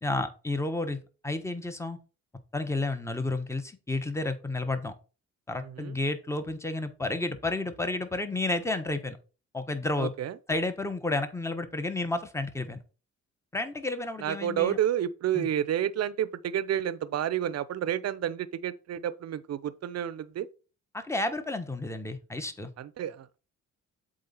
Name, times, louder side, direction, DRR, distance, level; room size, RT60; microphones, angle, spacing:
voice 1, 0.0-1.0 1.2-2.0 2.5-4.9 5.5-9.2 9.5-10.1 10.5-12.8 13.5-14.8 15.3-15.5 20.9-22.7, left 2 dB, 10° left, 1.2 m, -31 dB
voice 2, 5.6-6.0 10.0-10.4 14.2-20.5 22.8-23.4, right 10 dB, 55° right, 0.8 m, -30 dB
7.9 x 3.9 x 5.5 m
cardioid pair, 90°, 30 cm